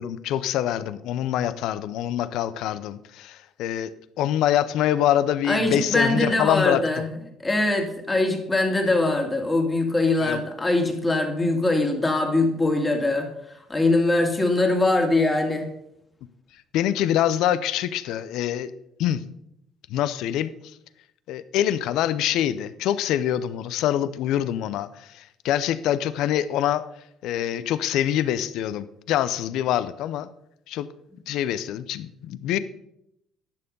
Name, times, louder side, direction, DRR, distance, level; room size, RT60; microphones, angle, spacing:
voice 1, 0.0-3.9 4.2-6.8 10.2-10.4 16.7-18.7 19.0-19.2 19.9-20.5 21.3-26.8 27.2-30.3 30.7-30.9 31.3-32.6, left 11 dB, 75° left, 15 dB, 0.6 m, -25 dB
voice 2, 5.5-7.0 7.4-15.7, left 2 dB, 20° left, 3 dB, 2.2 m, -22 dB
10.5 x 7.0 x 5.4 m, 0.80 s
cardioid pair, 95°, 0 cm